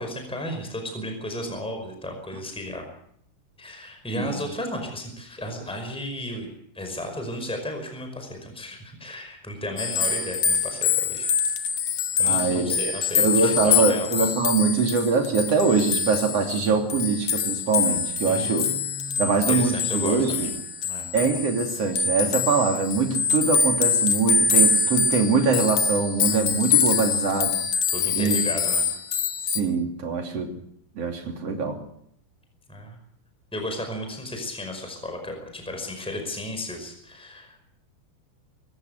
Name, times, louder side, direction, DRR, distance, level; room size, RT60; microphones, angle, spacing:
voice 1, 0.0-2.8 3.6-11.3 12.2-14.1 18.2-20.5 20.8-21.1 27.9-28.9 32.7-33.0 33.5-37.6, left 1 dB, ahead, 4 dB, 5.0 m, -34 dB
sound 1, 9.8-29.6, left 6 dB, 55° left, 2.8 m, -25 dB
voice 2, 12.2-18.7 19.2-20.5 21.1-27.6 28.1-28.4 29.5-30.5 31.0-31.8, right 4 dB, 45° right, 3 dB, 3.7 m, -23 dB
25.5 x 14.5 x 8.1 m, 0.71 s
omnidirectional pair, 4.3 m